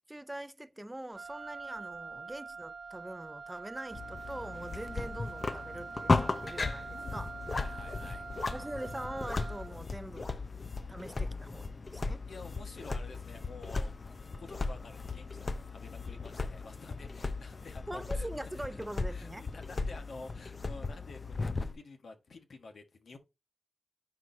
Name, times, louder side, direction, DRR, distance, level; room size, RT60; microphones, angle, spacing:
voice 1, 0.1-7.4 8.5-10.4 10.9-12.2 17.9-19.4, right 1 dB, 15° right, 0.5 m, -43 dB
Wind instrument woodwind instrument, 1.1-9.8, right 4 dB, 60° right, 0.9 m, -45 dB
sound 1, 3.9-21.7, left 3 dB, 45° left, 0.6 m, -36 dB
voice 2, 7.5-8.2 10.8-11.2 12.3-13.9 14.4-18.8 19.1-23.2, left 3 dB, 75° left, 1.4 m, -50 dB
9.9 x 4.7 x 2.7 m
cardioid pair, 70°, 0 cm